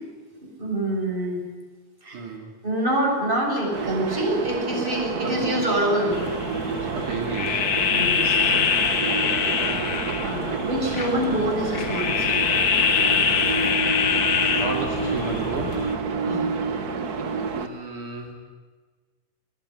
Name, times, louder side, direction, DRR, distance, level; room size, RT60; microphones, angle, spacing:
voice 1, 0.6-1.4 2.0-2.2 2.6-6.3 7.9-8.7 9.2-9.7 10.2-12.3 16.3-16.5, right 1 dB, 15° right, -1 dB, 7.6 m, -26 dB
voice 2, 2.1-2.5 4.9-5.4 6.9-7.7 14.0-15.9 17.5-18.3, right 3 dB, 75° right, 1 dB, 4.2 m, -33 dB
sound 1, 3.7-17.7, right 4 dB, 45° right, 1.2 m, -29 dB
sound 2, 6.1-16.0, left 6 dB, 55° left, 1.2 m, -24 dB
22.5 x 21.5 x 9.8 m, 1.4 s
omnidirectional pair, 3.7 m